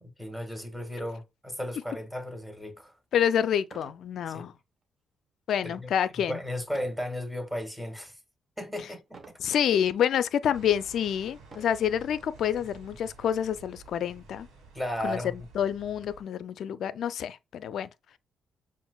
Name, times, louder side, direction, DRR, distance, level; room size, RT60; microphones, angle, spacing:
voice 1, 0.0-2.9 4.3-4.4 5.6-5.9 6.3-8.2 8.6-9.2 14.7-15.5, left 1 dB, 10° right, 1.7 m, -35 dB
sound 1, 2.7-2.8 3.6-4.1 4.5-4.8 6.7-7.1 7.7-8.1 9.1-9.5 10.2-10.3 11.4-11.9 12.9-13.1 13.4-13.5 13.9-15.1, right 4 dB, 45° right, 0.9 m, -51 dB
voice 2, 3.1-4.5 5.5-6.4 9.4-14.5 15.0-15.2 15.6-17.9, left 9 dB, 70° left, 0.4 m, -28 dB
sound 2, 10.5-16.2, right 4 dB, 80° right, 1.5 m, -51 dB
7.0 x 2.5 x 2.2 m
supercardioid pair, 55°, 0 cm